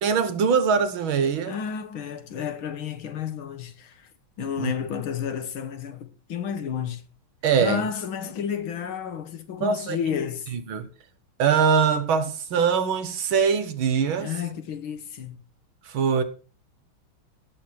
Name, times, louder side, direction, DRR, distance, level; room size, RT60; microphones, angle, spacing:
voice 1, 0.0-1.6 4.6-4.7 7.4-7.8 9.6-10.0 10.5-10.9 11.4-14.3 15.9-16.2, right 6 dB, 70° right, 2.0 m, -22 dB
voice 2, 1.5-4.1 4.4-7.0 7.6-10.5 14.2-15.4, left 7 dB, 75° left, 2.0 m, -31 dB
17.0 x 6.7 x 4.4 m
omnidirectional pair, 2.3 m